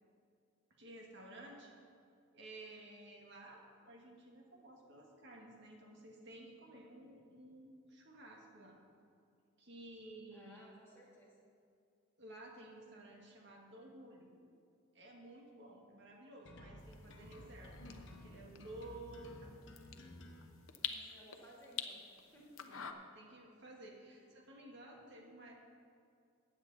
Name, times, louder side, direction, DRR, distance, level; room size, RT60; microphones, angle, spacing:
voice 1, 0.7-1.7 2.3-8.8 9.6-10.6 12.2-14.3 14.9-19.5 22.7-25.5, right 1 dB, 55° right, 0 dB, 1.8 m, -54 dB
voice 2, 10.3-11.4 20.8-22.9, equal, 10° left, -7 dB, 2.9 m, -60 dB
sound 1, 16.5-20.5, left 1 dB, 60° left, 1.5 m, -54 dB
sound 2, 16.8-22.9, left 8 dB, 80° left, 0.8 m, -48 dB
15.0 x 9.5 x 4.1 m, 2.4 s
head